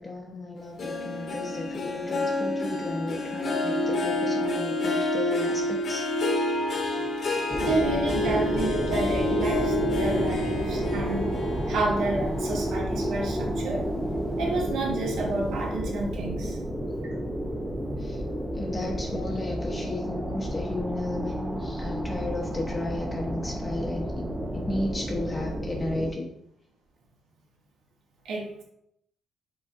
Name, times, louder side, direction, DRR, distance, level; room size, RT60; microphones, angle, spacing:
voice 1, 0.0-6.1 18.0-18.2 18.5-24.3 24.5-26.3, left 2 dB, 25° left, 0 dB, 0.7 m, -34 dB
Harp, 0.8-13.5 13.9-14.3 14.8-14.9, left 1 dB, 55° left, 1.0 m, -29 dB
sound 1, 7.5-26.1, equal, 10° right, 0.5 m, -31 dB
voice 2, 7.6-11.3 11.7-13.9 14.4-16.6 28.2-28.6, right 2 dB, 75° right, -1 dB, 1.0 m, -30 dB
5.0 x 4.0 x 2.4 m, 0.76 s
cardioid pair, 90°, 0 cm